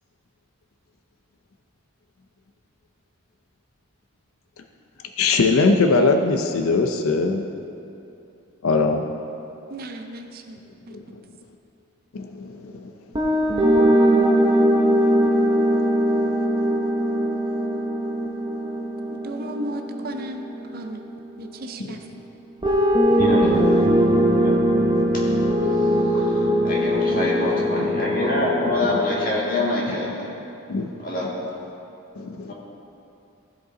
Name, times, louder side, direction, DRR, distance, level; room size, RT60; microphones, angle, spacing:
voice 1, 5.2-7.4 8.6-9.0 10.9-11.0 12.1-12.9 21.8-21.9 23.6-23.9 24.9-25.0 27.8-27.9 28.6-28.7 29.9-30.0 30.7-30.9 32.2-32.5, left 3 dB, 80° left, 5 dB, 0.5 m, -21 dB
voice 2, 9.7-10.6 10.9-11.0 19.1-20.5 20.7-21.0 21.4-22.1, right 1 dB, 45° right, 5 dB, 0.5 m, -34 dB
sound 1, 13.1-21.3 22.6-29.3, equal, 20° right, 0.8 m, -21 dB
voice 3, 23.2-23.7 24.3-24.6 25.2-25.4 25.7-25.8 26.1-30.4 31.0-31.3 32.5-32.6, left 1 dB, 40° left, -5 dB, 1.8 m, -26 dB
15.0 x 5.3 x 3.9 m, 2.8 s
head